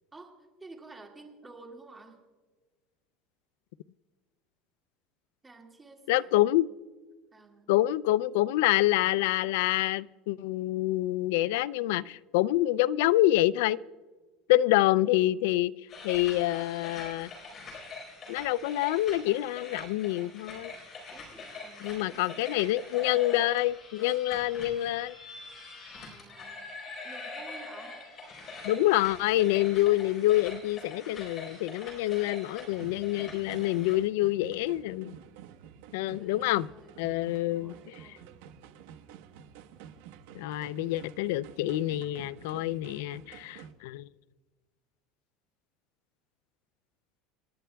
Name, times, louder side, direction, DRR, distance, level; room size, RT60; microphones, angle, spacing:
voice 1, 0.6-2.2 5.4-6.4 7.3-7.7 21.1-22.8 25.9-26.6 27.0-28.0 35.9-38.4, right 3 dB, 15° right, 1 dB, 2.0 m, -52 dB
voice 2, 6.1-6.7 7.7-13.8 14.5-15.7 16.0-17.3 18.3-20.7 21.8-25.1 28.6-35.1 35.9-36.7 37.0-37.7 40.3-44.1, left 15 dB, 85° left, 20 dB, 0.3 m, -27 dB
sound 1, 15.9-34.0, left 3 dB, 30° left, 4.2 m, -44 dB
sound 2, 32.7-43.7, right 9 dB, 90° right, 1.0 m, -50 dB
28.5 x 11.0 x 2.3 m, 1.3 s
cardioid pair, 150°, 0 cm